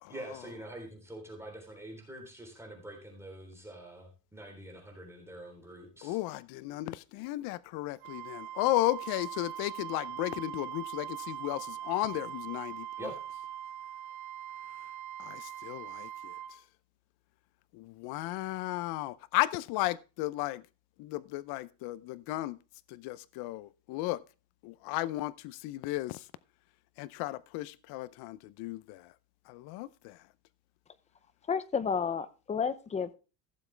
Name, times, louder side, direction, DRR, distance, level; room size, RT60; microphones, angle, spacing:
voice 1, 0.1-6.2 13.0-13.1, right 1 dB, 5° right, 3.6 m, -45 dB
voice 2, 6.0-13.1 15.2-16.3 17.7-20.6 21.0-22.6 22.9-24.2 24.6-26.2 27.0-29.1 29.5-30.2, left 17 dB, 50° left, 0.7 m, -34 dB
Wind instrument woodwind instrument, 8.0-16.6, right 11 dB, 80° right, 1.6 m, -41 dB
voice 3, 31.5-33.1, left 6 dB, 15° left, 0.6 m, -31 dB
16.0 x 7.2 x 3.3 m
cardioid pair, 145°, 49 cm